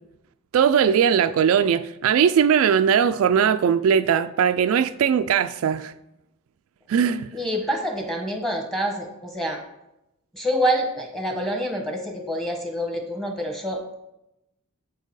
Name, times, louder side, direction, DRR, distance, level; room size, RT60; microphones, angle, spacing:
voice 1, 0.5-5.9 6.9-7.3, right 7 dB, 75° right, 0.3 m, -19 dB
voice 2, 7.3-9.6 10.3-13.9, equal, ahead, 1.1 m, -27 dB
7.6 x 4.5 x 4.7 m
head